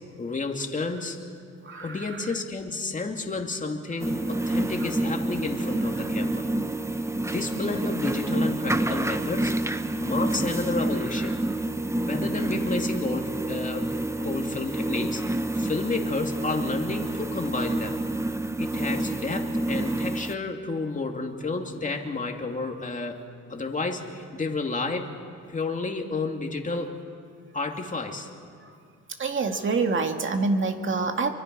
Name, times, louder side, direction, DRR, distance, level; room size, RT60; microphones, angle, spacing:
voice 1, 0.2-1.2 1.8-6.5 6.9-7.0 7.3-9.5 9.9-11.4 12.0-13.9 14.2-15.2 15.5-18.0 18.6-23.2 23.5-25.1 25.5-27.0 27.5-28.3, left 3 dB, 25° left, 2 dB, 2.7 m, -31 dB
voice 2, 1.6-2.3 6.0-6.1 28.6-28.8 29.2-31.3, right 4 dB, 40° right, 5 dB, 2.2 m, -27 dB
sound 1, 4.0-20.3, right 1 dB, 10° right, 0.9 m, -28 dB
29.0 x 24.0 x 5.5 m, 2.3 s
cardioid pair, 90°, 30 cm